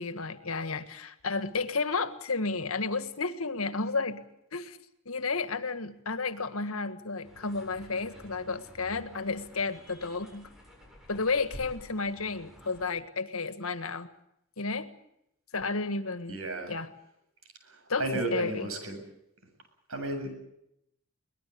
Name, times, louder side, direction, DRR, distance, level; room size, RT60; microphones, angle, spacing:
voice 1, 0.0-4.2 4.5-4.8 5.0-10.5 11.1-14.1 14.6-14.9 15.5-16.4 16.7-16.9 17.9-18.7, left 4 dB, 85° left, 11 dB, 1.7 m, -32 dB
sound 1, 7.2-12.8, equal, ahead, 7.9 m, -51 dB
voice 2, 16.3-16.7 17.6-19.0 19.9-20.3, right 2 dB, 80° right, 7 dB, 7.6 m, -33 dB
23.5 x 19.5 x 8.5 m, 0.79 s
head